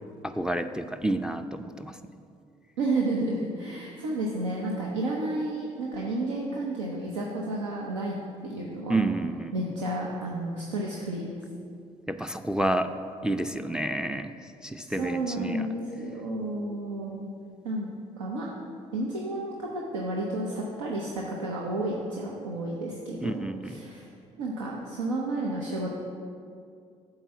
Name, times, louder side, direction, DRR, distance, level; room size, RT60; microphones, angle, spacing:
voice 1, 0.2-2.0 8.9-9.5 12.1-12.9 13.2-14.4 14.6-15.7 23.2-23.8, right 1 dB, 5° right, 7 dB, 0.4 m, -29 dB
voice 2, 2.8-8.2 8.4-8.9 9.5-11.3 14.9-17.2 17.6-17.9 18.2-18.5 18.9-24.1 24.4-25.9, right 2 dB, 90° right, -2 dB, 0.7 m, -31 dB
8.2 x 3.9 x 6.9 m, 2.4 s
hypercardioid pair, 50°, 15 cm